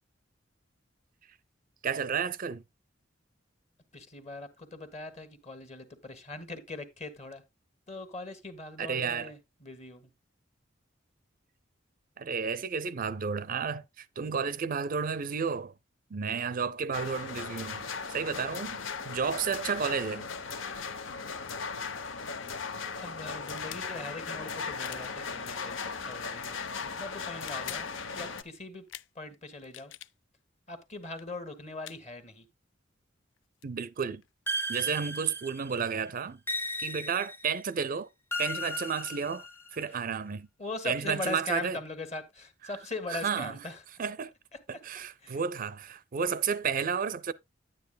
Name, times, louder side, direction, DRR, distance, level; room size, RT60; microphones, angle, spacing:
voice 1, 1.8-2.6 8.8-9.3 12.2-15.7 16.1-18.8 19.0-20.3 33.6-34.2 34.7-36.4 36.8-38.1 38.4-39.5 39.7-40.5 40.8-41.8 43.2-43.5 44.0-44.3 44.7-47.3, right 6 dB, 45° right, 0.5 m, -32 dB
voice 2, 3.9-7.4 7.9-10.1 22.9-27.9 28.1-28.9 29.1-29.9 30.7-32.5 40.6-43.8 44.5-44.6 44.9-45.4, left 2 dB, 35° left, 1.4 m, -40 dB
sound 1, 16.9-28.4, left 5 dB, 85° left, 0.8 m, -37 dB
sound 2, 23.5-23.9 24.8-25.1 26.1-26.3 27.3-27.9 28.9-29.1 29.6-30.1 31.1-31.2 31.8-32.0 33.4-33.5 33.6-34.9, left 13 dB, 70° left, 0.4 m, -46 dB
sound 3, 34.5-35.8 36.5-37.6 38.3-39.8, equal, 10° left, 0.9 m, -35 dB
10.0 x 9.2 x 2.3 m
head